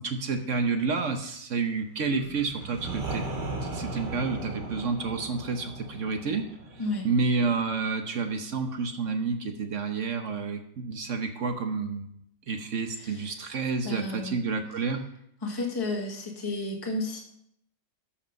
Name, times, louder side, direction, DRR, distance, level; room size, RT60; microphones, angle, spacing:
voice 1, 0.0-3.2 3.6-12.2 12.5-15.0, right 4 dB, 50° right, 6 dB, 1.1 m, -30 dB
sound 1, 2.0-7.8, right 2 dB, 70° right, 2.6 m, -37 dB
voice 2, 12.9-13.3 13.8-14.3 15.4-17.2, left 2 dB, 15° left, -1 dB, 1.6 m, -32 dB
13.0 x 5.8 x 5.2 m, 0.73 s
omnidirectional pair, 1.9 m